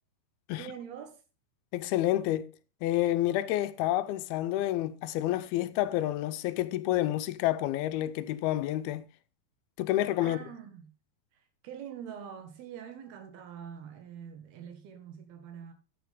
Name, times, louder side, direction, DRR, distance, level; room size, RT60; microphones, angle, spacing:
voice 1, 0.5-1.2 10.2-10.9 11.3-15.7, right 8 dB, 85° right, 3.6 m, -44 dB
voice 2, 1.7-2.5 2.8-9.0 9.8-10.4, left 14 dB, 85° left, 2.6 m, -29 dB
10.5 x 10.0 x 3.6 m
omnidirectional pair, 4.4 m